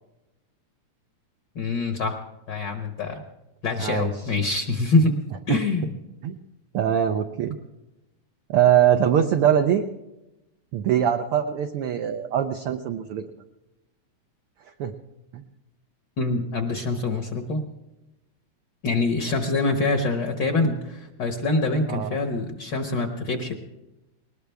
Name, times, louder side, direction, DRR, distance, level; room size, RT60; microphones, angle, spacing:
voice 1, 1.5-2.2 2.5-3.2 3.6-5.2 5.5-5.9 16.2-17.6 18.8-23.5, left 3 dB, 55° left, 6 dB, 1.3 m, -25 dB
voice 2, 3.8-4.3 5.5-5.6 6.2-6.4 6.7-7.6 8.5-9.8 10.7-13.2 14.8-14.9 15.3-15.5 21.9-22.2, right 9 dB, 75° right, 6 dB, 1.3 m, -22 dB
20.5 x 19.5 x 3.4 m, 0.98 s
omnidirectional pair, 3.3 m